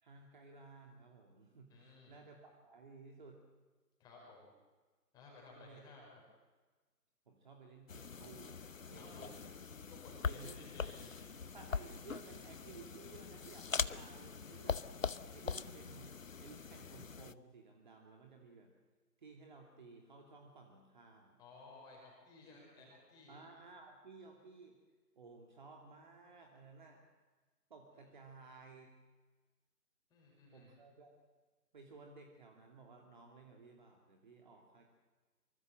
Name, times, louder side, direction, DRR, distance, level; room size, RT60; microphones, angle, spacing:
voice 1, 0.0-3.4 5.5-5.8 7.3-8.6 8.9-9.4 10.2-10.7 11.5-14.9 15.3-18.7 19.2-21.4 22.4-23.0 23.3-24.8 25.2-27.0 27.7-28.9 30.5-31.1 31.7-34.9, right 4 dB, 30° right, 2 dB, 2.7 m, -57 dB
voice 2, 1.7-2.2 4.0-4.5 5.1-6.1 8.9-9.4 9.9-11.2 21.4-23.4 30.1-30.7, left 3 dB, 10° left, -2 dB, 5.2 m, -57 dB
sound 1, 7.9-17.3, left 5 dB, 55° left, 0.9 m, -42 dB
26.0 x 24.0 x 7.7 m, 1.3 s
figure-of-eight pair, 155°, 49 cm